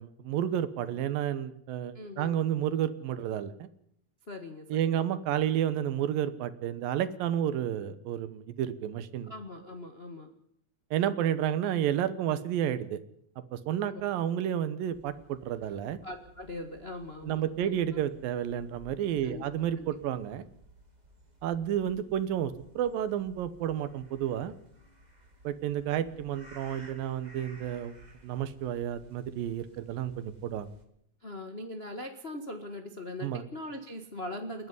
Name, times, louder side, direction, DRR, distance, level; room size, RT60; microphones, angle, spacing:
voice 1, 0.0-3.7 4.7-9.3 10.9-13.0 13.5-16.0 17.2-20.5 21.4-24.5 25.4-27.9 28.2-30.7 33.2-33.4, right 10 dB, 75° right, 13 dB, 2.8 m, -31 dB
voice 2, 1.9-2.4 4.3-5.0 9.3-10.3 13.9-14.0 16.0-17.8 19.2-19.5 19.8-19.9 31.2-34.7, left 1 dB, 85° left, 5 dB, 0.5 m, -41 dB
sound 1, 14.9-30.8, equal, 15° right, 2.0 m, -56 dB
29.0 x 10.0 x 9.6 m, 0.71 s
omnidirectional pair, 4.2 m